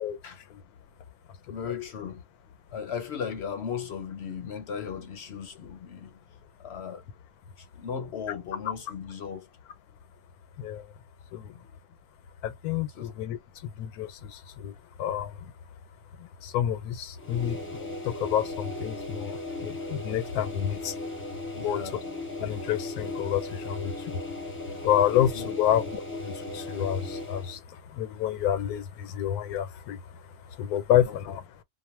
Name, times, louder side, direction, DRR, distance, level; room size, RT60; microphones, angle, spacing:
voice 1, 1.5-2.2 2.7-6.2 6.6-7.0 7.6-9.5 11.5-11.7 12.9-13.1 21.5-22.0 25.3-25.5 31.0-31.4, left 7 dB, 60° left, 0.7 m, -37 dB
voice 2, 10.6-10.9 11.3-11.6 12.4-15.5 16.2-21.0 21.6-21.8 22.4-24.2 24.8-30.2 30.5-31.4, left 10 dB, 85° left, 1.1 m, -29 dB
sound 1, 17.1-27.6, left 2 dB, 15° left, 0.5 m, -37 dB
2.5 x 2.1 x 3.0 m
omnidirectional pair, 1.5 m